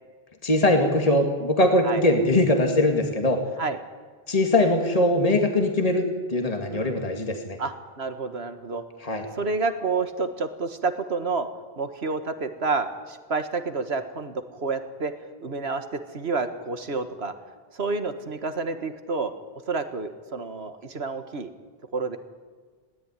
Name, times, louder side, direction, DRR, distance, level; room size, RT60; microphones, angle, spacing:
voice 1, 0.4-3.4 4.3-6.0 6.3-7.6 9.0-9.2, left 1 dB, 35° left, 4 dB, 2.1 m, -21 dB
voice 2, 7.6-8.8 9.4-11.5 11.8-15.1 15.4-15.8 16.1-17.3 17.7-19.3 19.7-21.5 21.9-22.2, right 4 dB, 80° right, 9 dB, 1.9 m, -29 dB
21.0 x 17.0 x 9.7 m, 1.5 s
omnidirectional pair, 1.1 m